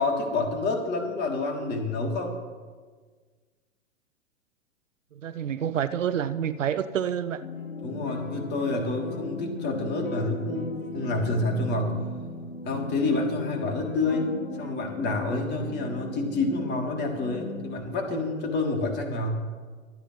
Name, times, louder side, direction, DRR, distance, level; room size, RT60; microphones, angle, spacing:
voice 1, 0.0-2.3 7.8-11.9 12.6-14.3 14.6-19.4, left 2 dB, 25° left, 0 dB, 3.5 m, -28 dB
voice 2, 5.2-7.4, right 9 dB, 70° right, 12 dB, 0.9 m, -28 dB
sound 1, 7.4-17.7, left 3 dB, 80° left, 2.6 m, -37 dB
26.5 x 14.5 x 3.4 m, 1.5 s
figure-of-eight pair, 110°, 40 cm